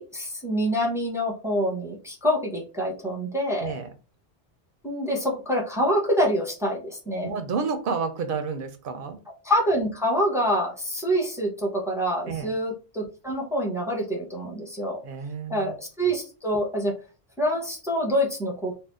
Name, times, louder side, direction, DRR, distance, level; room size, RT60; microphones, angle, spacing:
voice 1, 0.0-3.8 4.8-7.3 9.4-15.0 15.5-16.9 17.4-18.7, equal, 5° right, -1 dB, 0.7 m, -26 dB
voice 2, 7.2-9.2 12.3-12.6 15.0-15.8, right 5 dB, 60° right, 8 dB, 0.7 m, -30 dB
2.6 x 2.3 x 3.4 m, 0.32 s
omnidirectional pair, 1.1 m